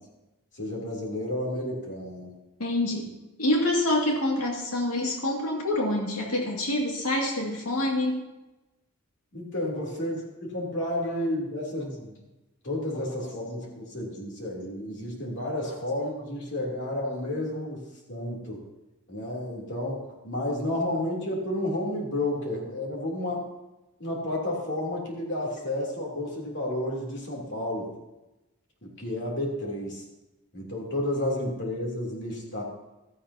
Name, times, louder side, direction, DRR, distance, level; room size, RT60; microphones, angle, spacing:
voice 1, 0.5-2.3 9.3-12.2 12.6-17.8 18.1-18.6 19.1-23.4 24.0-27.9 28.8-30.0 30.5-32.6, left 1 dB, 55° left, -2 dB, 3.1 m, -31 dB
voice 2, 2.6-3.1 3.4-8.3 15.6-15.8, left 1 dB, 75° left, -2 dB, 2.3 m, -26 dB
16.0 x 13.0 x 2.8 m, 1.0 s
head